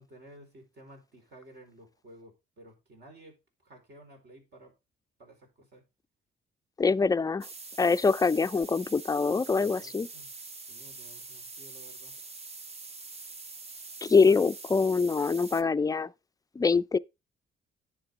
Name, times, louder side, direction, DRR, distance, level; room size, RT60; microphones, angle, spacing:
voice 1, 0.0-4.7 5.2-5.8 9.5-10.3 10.6-12.1, right 1 dB, 60° right, 4.7 m, -54 dB
voice 2, 6.8-7.5 7.8-10.1 14.0-16.1 16.6-17.0, left 4 dB, 20° left, 0.4 m, -24 dB
sound 1, 7.4-15.6, right 3 dB, 30° right, 0.8 m, -45 dB
10.5 x 7.4 x 3.6 m
cardioid pair, 90°, 20 cm